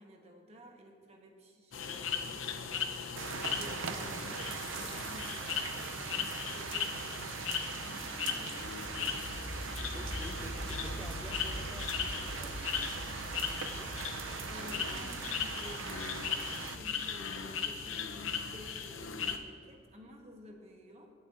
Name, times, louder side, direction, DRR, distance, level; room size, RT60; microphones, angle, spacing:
voice 1, 0.0-3.0 3.5-5.7 6.0-8.9 14.4-21.1, equal, 30° right, 2 dB, 1.2 m, -53 dB
sound 1, 1.7-19.4, left 7 dB, 85° left, 0.7 m, -38 dB
sound 2, 3.2-16.8, right 6 dB, 80° right, 0.5 m, -41 dB
sound 3, 8.6-18.5, equal, 35° left, 1.0 m, -45 dB
voice 2, 9.9-14.0, equal, 5° right, 3 dB, 0.3 m, -51 dB
17.5 x 8.5 x 2.5 m, 2.4 s
head